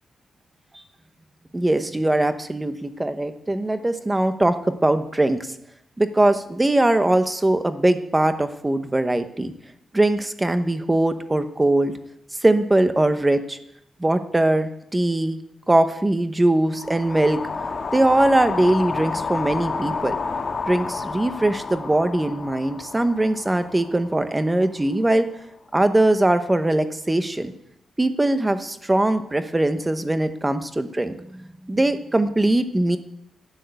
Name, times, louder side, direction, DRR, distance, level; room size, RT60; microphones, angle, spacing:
voice 1, 1.5-5.5 6.0-9.5 9.9-11.9 12.4-13.6 14.0-15.4 15.7-17.4 17.9-20.2 20.7-25.2 25.7-27.5 28.0-33.0, right 1 dB, 10° right, 9 dB, 0.9 m, -21 dB
sound 1, 16.7-24.9, left 4 dB, 35° left, 1.6 m, -30 dB
12.5 x 9.2 x 9.1 m, 0.77 s
wide cardioid pair, 170°, 0 cm